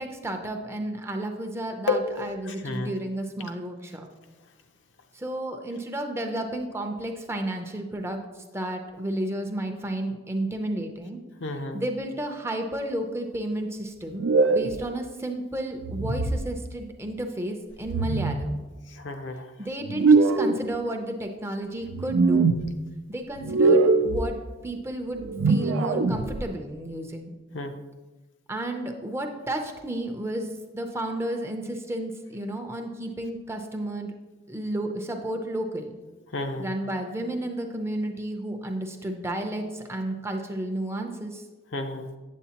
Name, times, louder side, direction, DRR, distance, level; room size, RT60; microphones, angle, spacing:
voice 1, 0.0-4.1 5.1-8.2 8.5-11.2 11.7-18.6 19.6-22.5 23.1-24.4 24.6-27.4 28.5-30.5 30.7-34.1 34.5-35.9 36.6-41.4, right 1 dB, 15° right, 4 dB, 0.6 m, -32 dB
voice 2, 1.9-2.2 2.6-2.9 11.4-11.8 19.0-19.4 27.5-27.7 36.3-36.7 41.7-42.1, left 3 dB, 65° left, 5 dB, 0.6 m, -30 dB
sound 1, 14.2-14.8 15.8-16.4 17.8-18.5 19.9-20.6 21.8-22.6 23.4-24.2 25.2-26.4, right 4 dB, 85° right, 0.5 m, -22 dB
8.2 x 7.7 x 2.9 m, 1.2 s
head